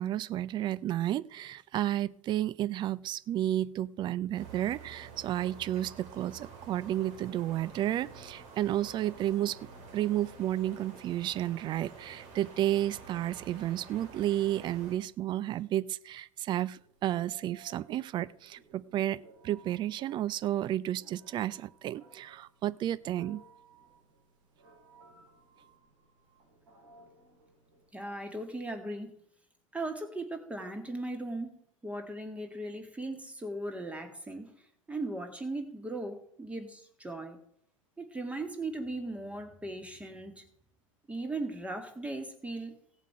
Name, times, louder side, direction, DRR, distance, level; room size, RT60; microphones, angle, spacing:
voice 1, 0.0-9.6 9.9-23.4, right 12 dB, 25° right, 19 dB, 0.4 m, -32 dB
sound 1, 4.4-15.0, right 4 dB, 45° right, 2.7 m, -49 dB
Telephone, 16.7-27.9, right 2 dB, 65° right, 5.1 m, -59 dB
voice 2, 27.9-29.1 29.7-34.5 34.9-37.4 38.0-40.4 41.1-42.7, right 2 dB, 5° right, 5 dB, 2.1 m, -38 dB
17.0 x 7.4 x 4.8 m, 0.67 s
figure-of-eight pair, 85°, 17 cm